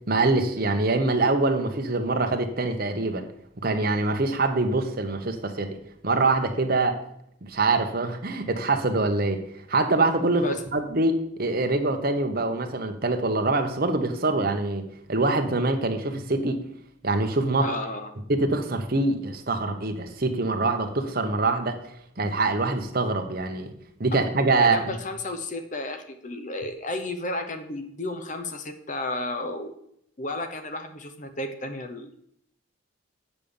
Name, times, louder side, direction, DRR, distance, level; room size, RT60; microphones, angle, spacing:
voice 1, 0.1-3.2 3.6-5.8 6.0-6.9 7.4-9.4 9.7-10.4 10.7-14.8 15.1-16.6 17.0-17.7 18.3-21.8 22.2-23.7 24.0-25.0, right 2 dB, 50° right, 5 dB, 1.1 m, -24 dB
voice 2, 17.6-18.1 24.6-29.7 30.2-32.2, left 2 dB, 40° left, 8 dB, 0.8 m, -33 dB
8.5 x 5.2 x 7.1 m, 0.72 s
head